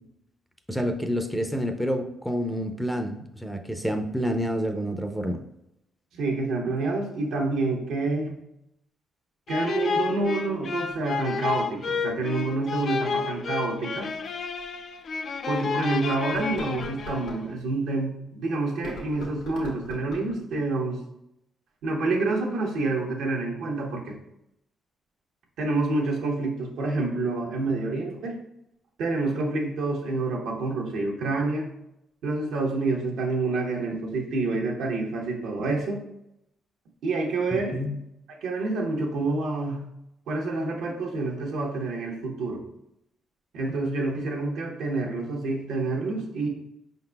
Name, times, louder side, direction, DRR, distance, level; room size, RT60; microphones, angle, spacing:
voice 1, 0.7-5.4 37.5-38.0, equal, ahead, 5 dB, 0.5 m, -28 dB
voice 2, 6.2-8.3 9.5-14.1 15.4-21.0 21.8-24.2 25.6-28.4 29.0-31.7 32.2-36.0 37.0-37.8 38.4-39.8 40.3-42.6 43.5-46.5, right 3 dB, 80° right, 0 dB, 1.0 m, -28 dB
sound 1, 9.5-17.5, left 5 dB, 55° left, 0.3 m, -31 dB
sound 2, 14.3-14.4 14.9-15.0 16.2-17.4 18.7-20.4, left 1 dB, 80° left, 1.2 m, -40 dB
5.2 x 3.9 x 2.2 m, 0.81 s
cardioid pair, 90°, 0 cm